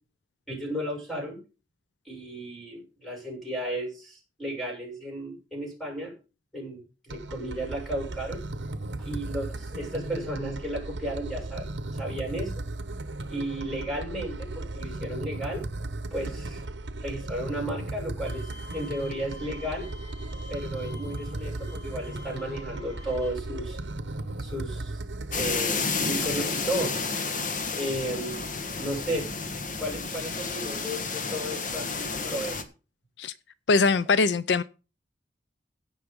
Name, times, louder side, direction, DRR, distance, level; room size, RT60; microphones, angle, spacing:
voice 1, 0.5-1.4 2.0-6.1 6.5-8.4 9.0-11.7 11.9-12.5 13.3-15.7 16.1-16.6 17.0-19.9 20.5-23.8 24.4-25.0 25.3-26.9 27.7-28.4 28.8-29.3 29.8-32.6, right 1 dB, ahead, 0 dB, 6.5 m, -34 dB
sound 1, 7.1-25.6, right 2 dB, 65° right, 1.0 m, -36 dB
Bowed string instrument, 18.3-23.3, left 3 dB, 20° left, 4.5 m, -49 dB
sound 2, 25.3-32.6, left 4 dB, 45° left, 1.5 m, -31 dB
voice 2, 33.7-34.6, left 4 dB, 65° left, 17 dB, 0.5 m, -22 dB
16.5 x 5.8 x 5.2 m, 0.32 s
head